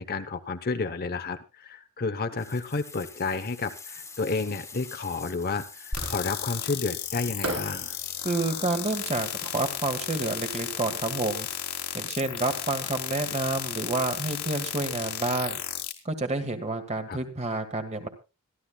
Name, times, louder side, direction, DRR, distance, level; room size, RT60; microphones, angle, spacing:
voice 1, 0.0-8.0 17.1-17.2, left 4 dB, 45° left, 8 dB, 0.9 m, -31 dB
sound 1, 2.4-11.8, left 4 dB, 15° left, 1.7 m, -46 dB
sound 2, 5.9-15.9, left 10 dB, 75° left, 2.5 m, -34 dB
Fireworks, 5.9-6.6 7.4-10.5, right 2 dB, 85° right, 4.9 m, -39 dB
voice 2, 8.2-11.5 11.9-15.6 16.0-18.1, right 2 dB, 30° right, 7 dB, 1.7 m, -29 dB
26.0 x 12.0 x 2.3 m, 0.29 s
head